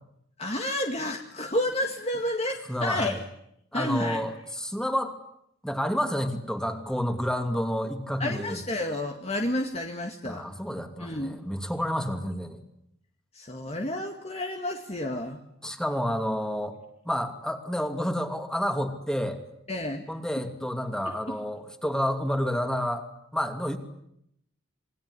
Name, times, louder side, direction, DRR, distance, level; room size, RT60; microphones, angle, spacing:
voice 1, 0.4-3.2 3.7-4.2 8.2-10.5 11.0-11.4 13.3-15.4 19.7-20.0, left 1 dB, 30° left, 3 dB, 2.1 m, -30 dB
voice 2, 2.7-3.2 3.7-5.1 5.6-8.6 10.2-12.6 15.6-16.7 17.0-19.4 20.1-23.1 23.3-23.8, equal, 5° left, 6 dB, 2.8 m, -29 dB
27.5 x 22.0 x 9.9 m, 0.77 s
head